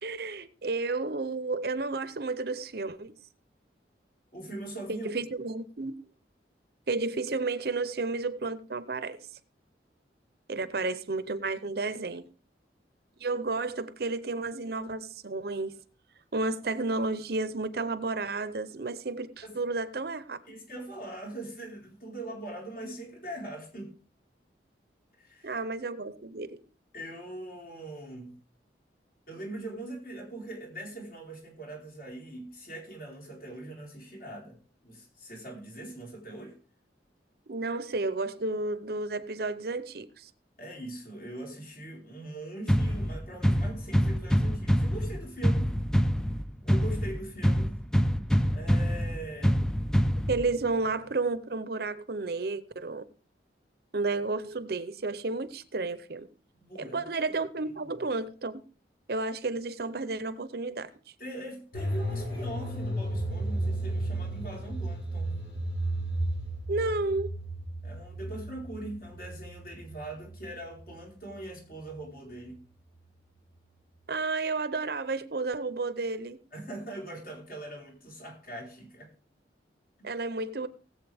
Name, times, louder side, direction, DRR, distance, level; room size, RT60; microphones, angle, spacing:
voice 1, 0.0-3.1 5.0-6.0 6.9-9.2 10.5-12.3 13.2-15.8 16.3-20.4 25.4-26.6 37.5-40.3 50.0-53.1 53.9-56.3 56.8-58.6 59.1-60.9 66.7-67.3 74.1-76.4 80.0-80.7, right 3 dB, 55° right, 0.7 m, -32 dB
voice 2, 4.3-5.1 19.4-19.6 20.5-23.9 25.2-25.6 26.9-28.4 29.3-36.6 40.6-45.7 46.6-47.8 48.5-49.6 56.5-57.0 57.9-58.1 61.2-65.3 67.8-72.6 76.5-79.1, right 1 dB, 50° left, 4.4 m, -42 dB
sound 1, 42.7-50.7, equal, 5° left, 0.4 m, -26 dB
sound 2, 61.7-71.6 71.9-72.0, right 1 dB, 90° left, 4.2 m, -34 dB
18.5 x 7.7 x 3.5 m
head